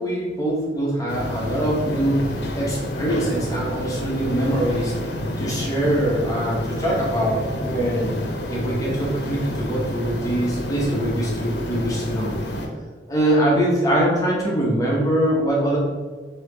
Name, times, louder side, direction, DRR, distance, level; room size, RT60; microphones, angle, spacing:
voice 1, 0.0-2.2 2.6-8.1 8.5-12.3 13.1-15.8, right 1 dB, 20° left, -4 dB, 0.8 m, -23 dB
sound 1, 1.1-12.7, left 1 dB, 75° left, 0.7 m, -29 dB
4.2 x 2.8 x 3.8 m, 1.4 s
head